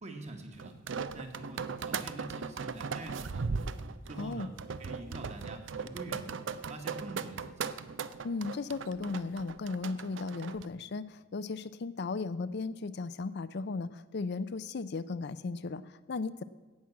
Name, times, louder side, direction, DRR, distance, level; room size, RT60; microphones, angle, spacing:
voice 1, 0.0-0.7 1.1-3.7 4.1-4.5 4.8-6.4 6.7-7.7, right 2 dB, 35° right, 4 dB, 1.6 m, -45 dB
sound 1, 0.6-10.7, right 5 dB, 65° right, 0.5 m, -38 dB
voice 2, 4.2-4.5 8.2-16.4, left 4 dB, 55° left, 14 dB, 0.5 m, -36 dB
17.0 x 6.2 x 7.2 m, 1.2 s
head